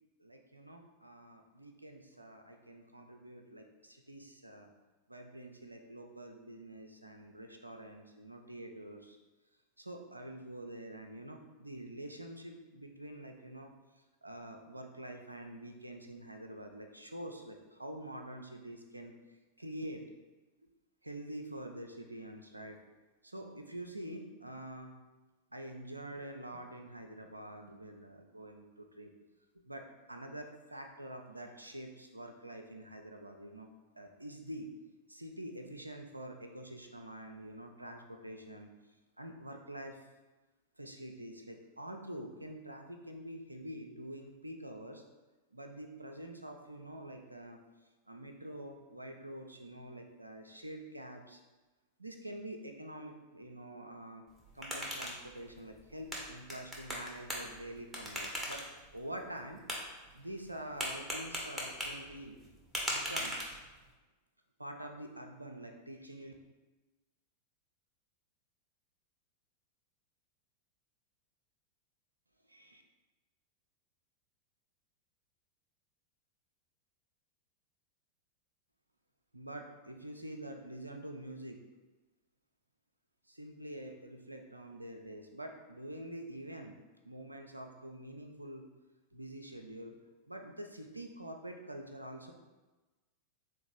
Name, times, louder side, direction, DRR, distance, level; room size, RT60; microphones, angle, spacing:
voice 1, 0.2-4.7 5.1-9.2 9.8-13.7 14.2-20.0 20.6-20.7 21.0-22.8 23.2-24.9 25.5-29.1 29.5-33.7 33.9-34.7 35.1-38.7 39.2-40.0 40.8-45.0 45.5-47.6 48.1-51.4 52.0-54.2 54.5-58.6 58.9-59.6 60.1-62.4 62.9-63.4 64.6-66.3 72.5-72.8 79.3-81.6 83.3-86.7 87.0-88.7 89.1-90.0 90.3-92.3, right 1 dB, 85° right, 4 dB, 0.4 m, -46 dB
sound 1, 54.3-63.9, equal, 5° right, 0.8 m, -41 dB
3.8 x 2.6 x 3.6 m, 1.2 s
figure-of-eight pair, 90°, 0 cm